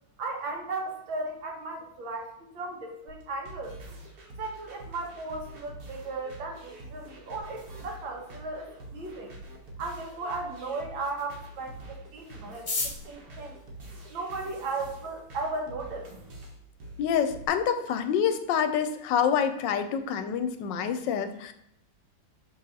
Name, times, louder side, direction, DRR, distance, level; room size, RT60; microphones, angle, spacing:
voice 1, 0.2-3.8 4.4-9.4 9.8-13.6 14.1-16.1, right 3 dB, 80° right, 1 dB, 1.9 m, -36 dB
sound 1, 3.1-17.5, right 1 dB, 55° right, 1.6 m, -46 dB
sound 2, 12.5-14.7 15.5-15.6 15.9-16.0 16.2-16.7 17.0-17.1 17.3-17.7 18.1-18.2 18.6-18.9, left 3 dB, 35° left, 0.9 m, -36 dB
voice 2, 17.0-21.5, left 8 dB, 75° left, 9 dB, 1.2 m, -27 dB
6.2 x 3.9 x 4.0 m, 0.77 s
omnidirectional pair, 2.1 m